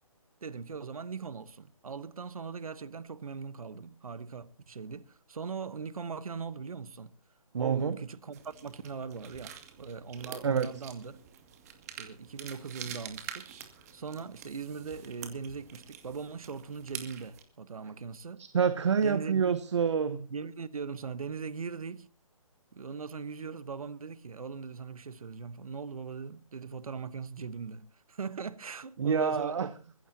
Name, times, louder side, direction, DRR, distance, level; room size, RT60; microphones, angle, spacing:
voice 1, 0.4-7.2 7.6-11.1 12.0-13.5 13.9-18.5 19.0-19.6 20.3-22.1 22.7-29.9, right 5 dB, 75° right, 1.2 m, -40 dB
voice 2, 7.5-8.0 10.4-10.7 18.4-20.3 29.0-29.7, right 6 dB, 50° right, 1.2 m, -27 dB
sound 1, 8.3-17.4, right 8 dB, 25° right, 2.3 m, -47 dB
23.0 x 15.5 x 2.8 m
hypercardioid pair, 160°, 18 cm